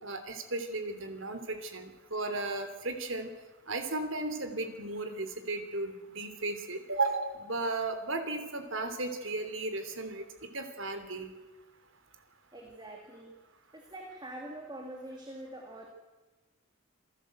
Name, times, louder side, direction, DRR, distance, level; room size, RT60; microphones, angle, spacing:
voice 1, 0.0-3.3 3.7-10.2 10.5-11.3, right 2 dB, 65° right, 8 dB, 3.1 m, -35 dB
voice 2, 12.5-13.4 13.7-15.9, right 1 dB, 20° right, 2 dB, 2.5 m, -44 dB
27.5 x 15.5 x 7.9 m, 1.2 s
head